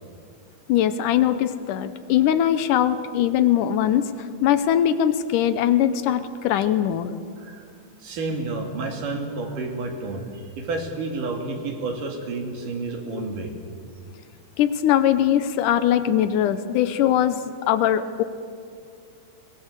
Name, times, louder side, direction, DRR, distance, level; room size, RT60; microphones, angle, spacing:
voice 1, 0.7-4.1 4.4-7.2 13.1-13.3 14.6-18.2, left 10 dB, 80° left, 12 dB, 2.3 m, -21 dB
voice 2, 8.0-13.5, right 3 dB, 75° right, 2 dB, 4.0 m, -30 dB
22.5 x 18.5 x 6.8 m, 2.3 s
omnidirectional pair, 3.8 m